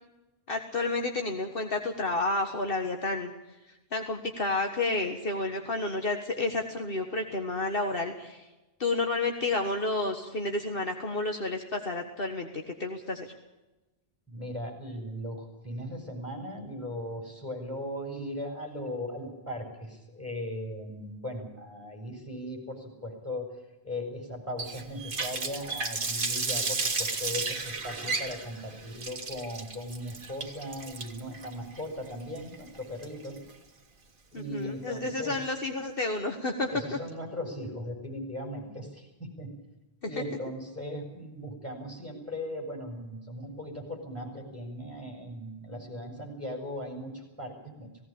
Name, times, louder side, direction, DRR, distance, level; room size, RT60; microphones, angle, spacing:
voice 1, 0.5-3.3 3.9-8.5 8.8-13.3 34.3-37.0 40.0-40.2, left 2 dB, 60° left, 4 dB, 1.7 m, -30 dB
voice 2, 14.3-23.5 23.8-33.4 34.3-35.4 36.7-39.5 40.0-47.9, left 1 dB, 15° left, 1 dB, 6.2 m, -38 dB
Water tap faucet, 24.6-33.5, right 3 dB, 55° right, 1.7 m, -33 dB
18.0 x 17.0 x 8.6 m, 1.0 s
omnidirectional pair, 1.1 m